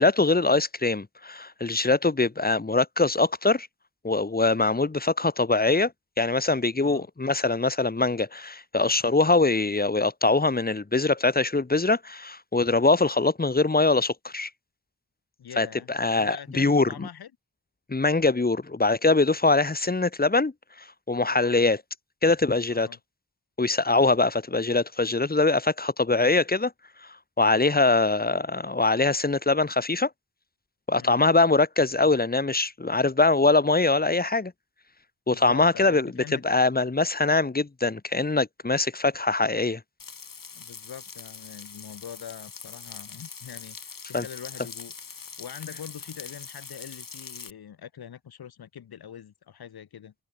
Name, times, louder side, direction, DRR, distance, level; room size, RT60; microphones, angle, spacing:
voice 1, 0.0-3.7 4.0-5.9 6.2-14.5 15.6-17.1 17.9-20.5 21.1-21.8 22.2-22.9 23.6-26.7 27.4-30.1 30.9-34.5 35.3-36.1 36.4-39.8 44.1-44.2, left 3 dB, 25° left, 1.5 m, -23 dB
voice 2, 15.4-17.3 21.3-21.6 22.7-23.0 31.0-31.2 35.3-36.4 40.5-50.1, left 9 dB, 90° left, 1.8 m, -43 dB
Frying (food), 40.0-47.5, left 5 dB, 60° left, 4.6 m, -42 dB
cardioid pair, 60°, 37 cm